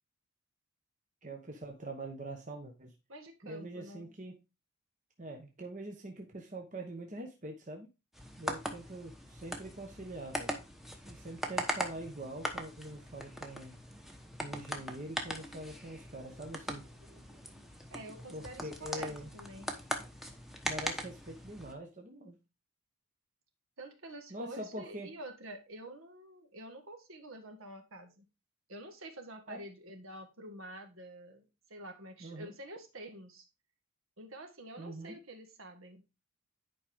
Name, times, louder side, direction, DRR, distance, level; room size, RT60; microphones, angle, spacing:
voice 1, 1.2-2.9 3.4-4.4 5.2-7.9 8.4-10.6 11.1-13.8 14.4-16.9 18.3-19.3 20.6-22.4 24.3-25.1 29.5-29.6 32.2-32.5 34.8-35.2, right 1 dB, 35° right, 1.1 m, -44 dB
voice 2, 3.1-4.1 16.3-16.7 17.0-19.7 23.8-28.3 28.7-33.5 34.2-36.0, right 1 dB, 65° right, 1.8 m, -48 dB
sound 1, 8.1-21.7, equal, ahead, 1.0 m, -41 dB
10.5 x 5.1 x 3.6 m
head